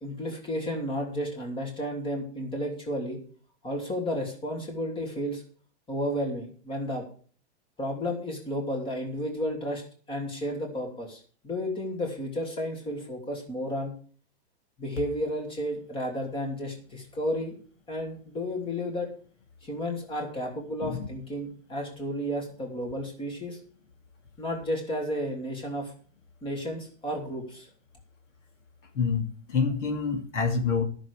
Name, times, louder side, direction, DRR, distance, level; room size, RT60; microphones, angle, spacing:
voice 1, 0.0-3.2 3.6-5.4 5.9-7.0 7.8-9.8 10.1-14.0 14.8-17.5 17.9-19.1 19.6-23.6 24.4-25.9 26.4-27.7, equal, 15° left, 1 dB, 2.7 m, -32 dB
voice 2, 29.5-30.8, left 5 dB, 90° left, 4 dB, 3.0 m, -26 dB
12.5 x 6.7 x 6.7 m, 0.44 s
supercardioid pair, 155°, 36 cm